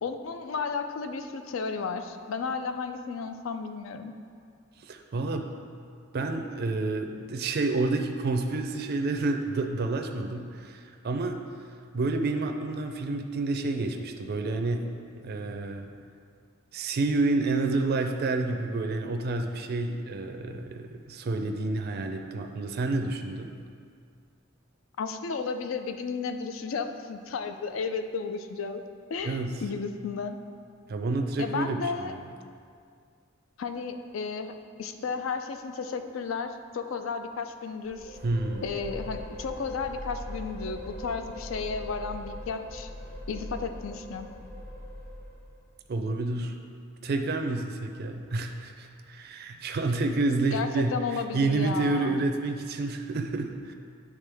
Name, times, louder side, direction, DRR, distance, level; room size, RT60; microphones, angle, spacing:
voice 1, 0.0-4.1 25.0-28.8 29.1-30.4 31.4-32.1 33.6-38.2 38.6-42.9 43.3-44.3 50.5-52.1, left 5 dB, 70° left, 8 dB, 0.4 m, -33 dB
voice 2, 4.8-5.5 6.1-11.4 11.9-14.9 15.2-15.9 16.7-23.5 29.2-29.6 30.9-32.3 38.2-38.7 45.9-46.5 47.0-53.7, right 3 dB, 50° right, 5 dB, 0.4 m, -29 dB
sound 1, 37.8-45.7, left 1 dB, 50° left, 0.9 m, -40 dB
9.1 x 3.5 x 3.4 m, 2.2 s
head